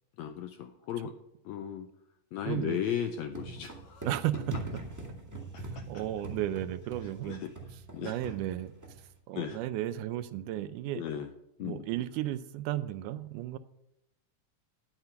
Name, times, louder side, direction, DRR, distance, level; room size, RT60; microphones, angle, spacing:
voice 1, 0.2-1.2 1.4-1.9 2.3-4.0 5.5-5.9 7.0-7.5 7.9-8.3 9.3-9.6 11.0-11.3 11.6-11.8, left 9 dB, 85° left, 7 dB, 1.6 m, -36 dB
voice 2, 2.5-2.8 4.0-4.4 5.6-7.4 8.0-11.0 11.6-13.6, right 13 dB, 80° right, 13 dB, 2.0 m, -34 dB
sound 1, 3.3-9.1, right 2 dB, 10° right, 0.7 m, -42 dB
10.5 x 8.2 x 5.7 m, 0.84 s
omnidirectional pair, 3.8 m